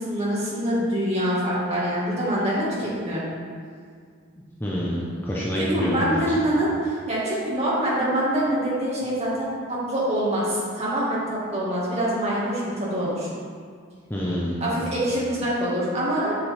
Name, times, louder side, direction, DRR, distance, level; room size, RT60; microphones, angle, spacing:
voice 1, 0.0-3.3 5.6-13.3 14.6-16.4, equal, 30° right, -7 dB, 1.8 m, -25 dB
voice 2, 4.6-6.1 14.1-14.7, equal, 10° left, -7 dB, 0.7 m, -27 dB
7.2 x 6.0 x 3.4 m, 2.1 s
head